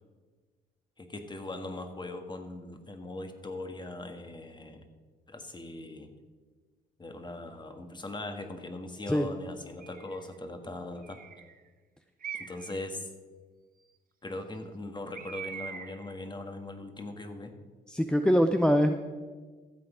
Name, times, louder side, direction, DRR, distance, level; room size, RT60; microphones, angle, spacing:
voice 1, 1.0-4.8 5.3-6.1 7.0-11.2 12.3-13.1 14.2-17.5, left 2 dB, 20° left, 6 dB, 1.5 m, -40 dB
Bird, 9.8-10.3 11.0-11.6 12.2-12.8 15.1-16.1, right 7 dB, 45° right, 0.9 m, -42 dB
voice 2, 17.9-18.9, equal, 5° left, 6 dB, 0.6 m, -23 dB
14.0 x 7.8 x 5.0 m, 1.4 s
cardioid pair, 90°, 20 cm